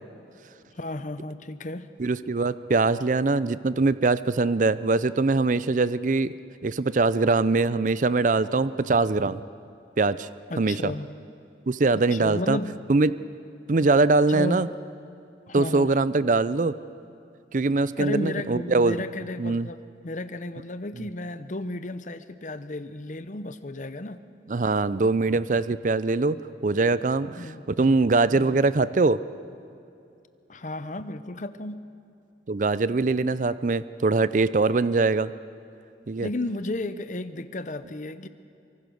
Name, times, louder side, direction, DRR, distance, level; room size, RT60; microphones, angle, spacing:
voice 1, 0.7-1.9 10.5-11.1 11.9-12.8 14.3-14.7 15.5-15.9 18.0-24.2 27.4-27.6 28.3-28.6 30.5-31.8 36.2-38.3, left 2 dB, 45° left, 12 dB, 0.9 m, -33 dB
voice 2, 2.0-6.3 6.6-9.4 10.0-10.3 10.6-10.9 11.7-12.6 12.9-13.1 13.7-14.7 15.5-16.7 17.5-19.0 19.4-19.7 24.5-27.4 27.7-29.2 32.5-35.3 36.1-36.3, right 3 dB, 45° right, 16 dB, 0.5 m, -22 dB
24.0 x 23.5 x 6.4 m, 2.6 s
head